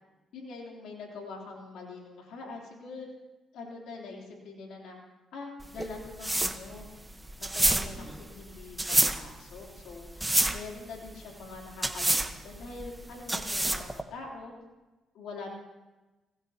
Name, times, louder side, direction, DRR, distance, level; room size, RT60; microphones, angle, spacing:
voice 1, 0.3-3.1 3.5-5.0 5.3-6.9 7.4-14.5 15.1-15.5, left 3 dB, 80° left, -1 dB, 3.3 m, -44 dB
sound 1, 5.6-14.0, right 1 dB, 10° right, 1.1 m, -29 dB
25.0 x 17.0 x 2.9 m, 1.1 s
cardioid pair, 90°, 0 cm